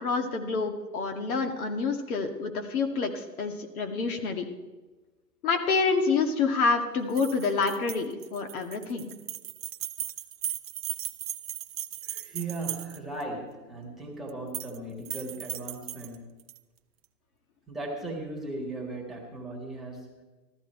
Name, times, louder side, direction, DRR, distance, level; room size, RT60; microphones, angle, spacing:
voice 1, 0.0-4.5 5.4-9.1, left 4 dB, 55° left, 5 dB, 1.9 m, -28 dB
sound 1, 7.1-13.2 14.3-14.8 15.0-16.6, right 12 dB, 40° right, 0.5 m, -37 dB
voice 2, 12.0-16.3 17.7-20.2, right 2 dB, ahead, -3 dB, 1.7 m, -37 dB
14.0 x 14.0 x 4.4 m, 1.2 s
hypercardioid pair, 145°, 50 cm